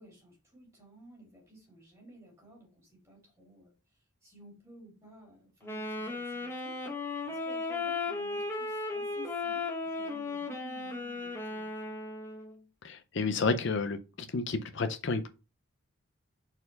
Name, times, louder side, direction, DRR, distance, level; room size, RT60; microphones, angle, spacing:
voice 1, 0.0-3.7 4.2-6.8 7.2-12.0, equal, 15° right, 2.7 m, -55 dB
Wind instrument woodwind instrument, 5.6-12.6, left 3 dB, 10° left, 0.9 m, -36 dB
voice 2, 12.8-14.0 14.3-15.3, left 4 dB, 55° left, 0.5 m, -30 dB
4.4 x 4.4 x 5.2 m
head